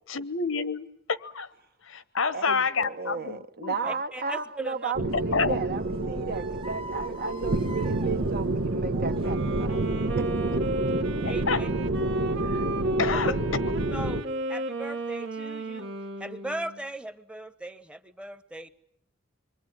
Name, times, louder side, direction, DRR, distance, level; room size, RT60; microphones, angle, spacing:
voice 1, 0.1-1.5 1.9-3.8 5.1-5.6 11.2-11.6 12.5-12.6 13.0-13.3, left 5 dB, 80° left, 1.1 m, -28 dB
voice 2, 2.3-5.0 5.2-9.8 10.2-10.8, right 4 dB, 50° right, 1.1 m, -34 dB
voice 3, 3.8-4.9 11.2-11.7 13.1-13.4 13.9-15.9 16.2-18.7, right 1 dB, 5° right, 1.0 m, -38 dB
sound 1, 4.5-9.8, right 1 dB, 25° right, 1.2 m, -45 dB
sound 2, 4.9-14.2, right 2 dB, 80° right, 1.4 m, -28 dB
Wind instrument woodwind instrument, 9.1-16.8, right 1 dB, 65° right, 1.7 m, -34 dB
26.0 x 23.0 x 9.3 m
head